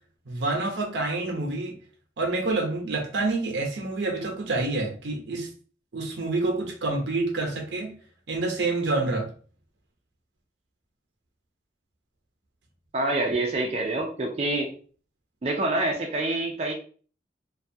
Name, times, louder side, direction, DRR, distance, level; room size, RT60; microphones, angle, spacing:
voice 1, 0.3-1.7 2.2-5.5 5.9-7.9 8.3-9.3, right 2 dB, 85° right, 0.7 m, -27 dB
voice 2, 12.9-14.7 15.4-16.7, right 2 dB, 35° right, 0.4 m, -26 dB
2.6 x 2.3 x 2.6 m
head